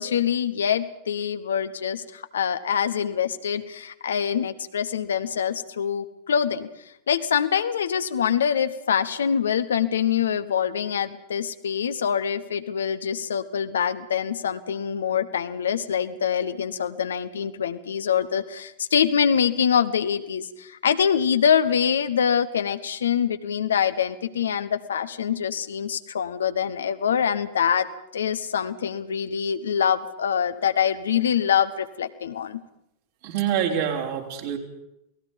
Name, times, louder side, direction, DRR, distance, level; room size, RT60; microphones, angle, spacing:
voice 1, 0.0-6.7 7.1-27.9 28.1-32.6, left 8 dB, 65° left, 11 dB, 1.1 m, -24 dB
voice 2, 33.2-34.6, right 9 dB, 50° right, 1 dB, 3.8 m, -26 dB
28.5 x 19.0 x 5.3 m, 0.83 s
figure-of-eight pair, 90°, 0 cm